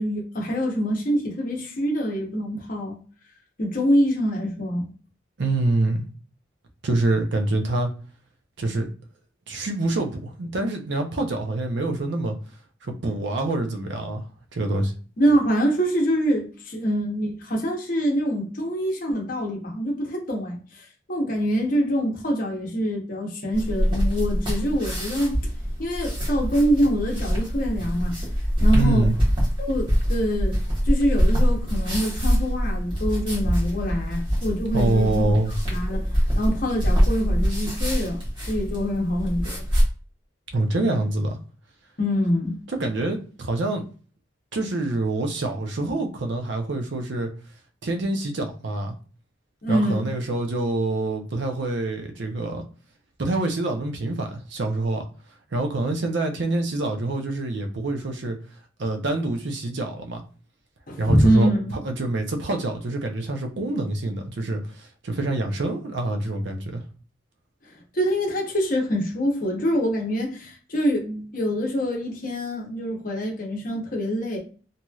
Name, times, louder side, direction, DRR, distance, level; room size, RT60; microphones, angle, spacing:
voice 1, 0.0-3.0 3.6-4.9 15.2-25.4 25.8-28.2 28.6-29.0 29.6-30.6 30.8-35.3 35.7-36.1 36.4-38.2 38.5-39.6 42.0-42.5 49.6-50.1 60.9-61.8 67.9-74.4, equal, 45° left, 0.8 m, -25 dB
voice 2, 5.4-6.1 6.8-7.9 8.6-8.9 9.5-12.3 12.8-14.2 14.5-14.9 28.7-29.1 34.7-35.5 40.5-41.4 42.7-43.8 44.5-47.3 47.8-48.9 49.7-52.6 53.2-55.1 55.5-58.4 58.8-60.2 61.0-66.8, right 2 dB, 65° right, 0.6 m, -26 dB
sound 1, 23.5-39.8, equal, 25° right, 1.1 m, -24 dB
3.0 x 2.7 x 2.3 m
head